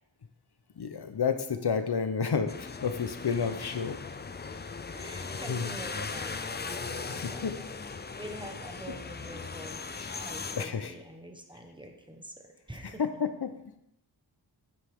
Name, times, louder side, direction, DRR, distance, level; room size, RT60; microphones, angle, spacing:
voice 1, 0.8-4.0 5.5-5.7 7.1-7.6 10.0-10.1 10.6-10.9 13.0-13.5, left 6 dB, 65° left, 9 dB, 0.9 m, -30 dB
sound 1, 2.5-10.7, left 4 dB, 25° left, 0.4 m, -38 dB
voice 2, 4.9-7.5 8.2-13.0, right 1 dB, 10° right, 3 dB, 1.3 m, -46 dB
9.6 x 7.4 x 3.7 m, 0.80 s
wide cardioid pair, 75°, 43 cm